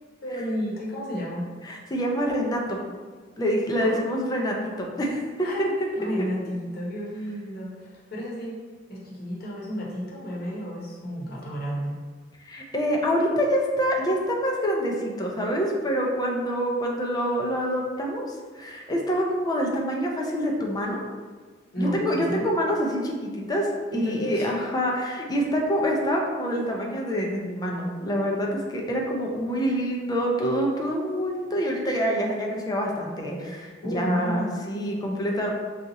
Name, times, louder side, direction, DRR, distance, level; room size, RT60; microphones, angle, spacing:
voice 1, 0.2-1.4 3.8-4.0 5.4-5.7 5.9-8.6 8.9-11.9 21.7-22.5 23.9-24.5 33.8-34.6, equal, 55° left, -5 dB, 0.9 m, -31 dB
voice 2, 1.6-2.8 3.4-5.7 12.4-18.3 18.5-21.0 21.8-35.5, equal, 20° left, 0 dB, 0.5 m, -26 dB
2.7 x 2.4 x 3.9 m, 1.5 s
head